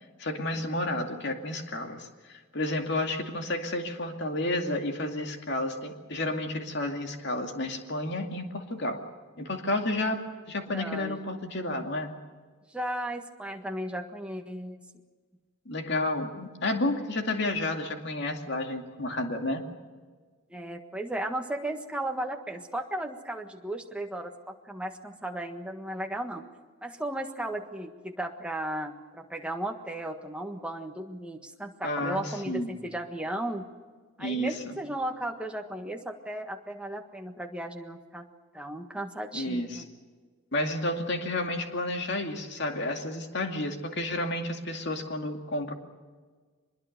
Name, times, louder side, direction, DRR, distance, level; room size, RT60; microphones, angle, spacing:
voice 1, 0.2-9.0 9.4-12.1 15.7-19.7 31.8-32.7 34.2-34.8 39.3-39.8 40.5-45.7, left 1 dB, 55° left, 4 dB, 2.4 m, -31 dB
voice 2, 10.7-11.2 12.7-14.8 20.5-26.5 26.8-33.7 34.2-38.3 38.5-39.9, right 1 dB, 5° right, 3 dB, 1.5 m, -35 dB
24.0 x 21.5 x 6.7 m, 1.5 s
head